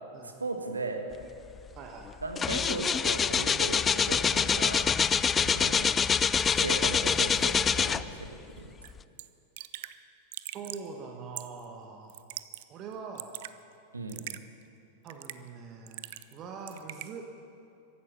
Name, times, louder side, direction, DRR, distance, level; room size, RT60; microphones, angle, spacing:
voice 1, 0.2-1.1 2.2-4.9 5.4-5.9 6.5-8.7 13.9-14.2, right 3 dB, 80° right, 5 dB, 1.4 m, -37 dB
sound 1, 1.6-1.8 2.1-8.3 8.9-9.0, left 6 dB, 20° left, 0.3 m, -26 dB
voice 2, 1.7-2.1 5.4-5.7 10.5-12.1 12.7-13.3 15.0-16.0 16.3-17.2, right 5 dB, 35° right, 2 dB, 1.3 m, -43 dB
Raindrop / Drip, 8.8-8.9 9.2-9.3 9.6-9.9 10.3-10.9 11.4-11.6 12.1-12.6 12.9-13.5 14.1-14.4 15.1-15.5 15.9-16.4 16.7-17.1, right 15 dB, 50° right, 0.5 m, -41 dB
15.0 x 11.0 x 6.2 m, 2.7 s
figure-of-eight pair, 90°, 0 cm